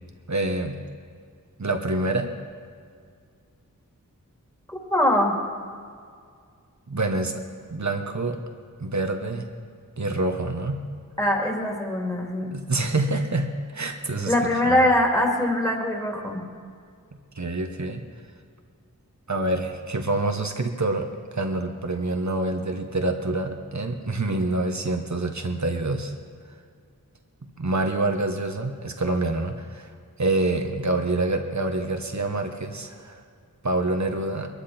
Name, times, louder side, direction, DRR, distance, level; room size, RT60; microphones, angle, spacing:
voice 1, 0.3-0.8 1.6-2.3 6.9-7.3 7.7-8.4 8.8-9.5 10.0-10.8 12.4-14.3 14.6-14.8 17.3-18.0 19.3-21.1 21.3-26.1 27.6-29.9 30.2-33.2 33.6-34.5, right 2 dB, 55° right, 5 dB, 1.3 m, -26 dB
voice 2, 4.7-5.3 11.2-12.5 14.3-16.4, left 1 dB, 10° left, 0 dB, 2.9 m, -22 dB
22.0 x 13.5 x 4.4 m, 2.1 s
wide cardioid pair, 55°, 34 cm